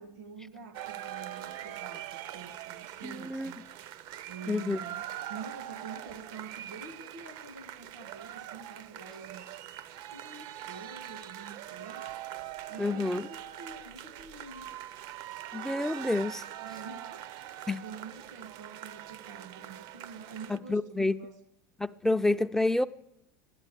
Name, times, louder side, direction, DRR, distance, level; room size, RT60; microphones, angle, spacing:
voice 1, 0.0-3.6 4.3-9.5 10.1-12.1 12.7-14.7 16.6-21.4, right 4 dB, 90° right, 1.8 m, -47 dB
sound 1, 0.7-20.6, right 12 dB, 60° right, 0.7 m, -43 dB
voice 2, 3.0-3.5 4.5-4.8 12.8-13.2 15.5-16.4 17.7-17.8 20.5-21.2 21.8-22.9, left 2 dB, 5° left, 0.4 m, -28 dB
13.0 x 11.0 x 8.4 m
supercardioid pair, 100°, 9 cm